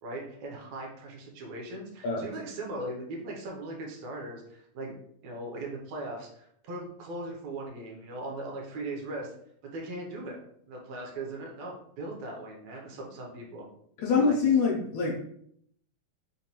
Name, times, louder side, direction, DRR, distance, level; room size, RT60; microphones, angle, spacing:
voice 1, 0.0-5.0 5.2-9.3 9.6-10.4 10.7-13.7 14.1-14.4, right 1 dB, 75° right, 0 dB, 1.9 m, -39 dB
voice 2, 14.0-15.1, left 5 dB, 75° left, -3 dB, 1.8 m, -24 dB
5.2 x 2.2 x 2.8 m, 0.68 s
omnidirectional pair, 3.5 m